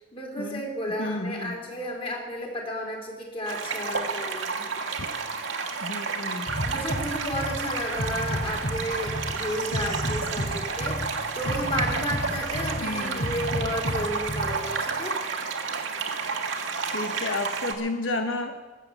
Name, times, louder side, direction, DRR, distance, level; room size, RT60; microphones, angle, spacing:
voice 1, 0.1-4.6 6.4-15.2, equal, 30° left, -1 dB, 3.4 m, -33 dB
voice 2, 1.0-1.6 5.8-6.5 12.8-13.2 16.9-18.6, left 2 dB, 75° left, 6 dB, 1.0 m, -31 dB
sound 1, 3.5-17.7, right 4 dB, 75° right, 1.7 m, -31 dB
sound 2, 6.5-14.5, equal, 60° left, 2.2 m, -32 dB
20.0 x 8.4 x 6.9 m, 1.3 s
head